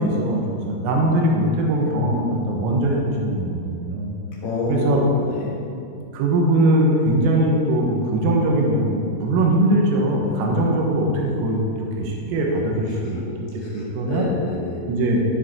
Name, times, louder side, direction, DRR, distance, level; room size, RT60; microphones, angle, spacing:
voice 1, 0.0-4.1 4.7-5.0 6.1-13.2 13.7-14.3 14.9-15.2, right 1 dB, 85° right, -1 dB, 4.0 m, -21 dB
voice 2, 4.4-5.6 10.0-10.1 10.4-10.5 13.0-13.2 13.5-14.9, left 4 dB, 55° left, -6 dB, 4.1 m, -28 dB
17.5 x 6.9 x 4.4 m, 2.6 s
omnidirectional pair, 5.8 m